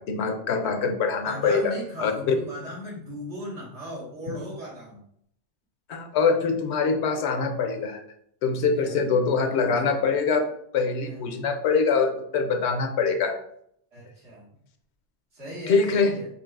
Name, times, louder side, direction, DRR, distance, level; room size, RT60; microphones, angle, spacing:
voice 1, 0.0-2.3 5.9-8.0 8.4-10.5 10.7-13.4 15.7-16.2, left 5 dB, 75° left, 6 dB, 0.9 m, -24 dB
voice 2, 1.2-5.0 8.8-9.0 11.0-11.2 13.9-14.4 15.3-16.3, equal, 85° right, -7 dB, 2.0 m, -37 dB
5.3 x 2.7 x 2.4 m, 0.70 s
omnidirectional pair, 1.1 m